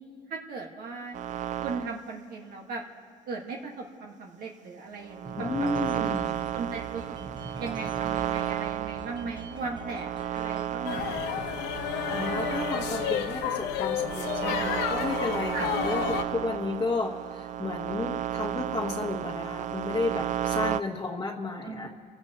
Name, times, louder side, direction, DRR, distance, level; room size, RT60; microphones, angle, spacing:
voice 1, 0.3-1.2 1.6-2.8 3.3-5.7 5.9-6.1 6.5-7.0 7.6-11.2 15.5-15.7 21.6-21.9, right 4 dB, 65° right, 0 dB, 1.6 m, -37 dB
sound 1, 1.1-2.0 5.0-20.8, right 12 dB, 45° right, 0.4 m, -33 dB
sound 2, 5.2-10.7 11.0-11.4 11.8-13.2, right 2 dB, 25° right, 1.5 m, -44 dB
voice 2, 5.4-6.4 12.1-21.9, left 3 dB, 20° left, -2 dB, 1.3 m, -32 dB
sound 3, 10.8-16.2, left 10 dB, 90° left, 0.9 m, -31 dB
29.0 x 16.5 x 2.9 m, 2.2 s
cardioid pair, 110°, 17 cm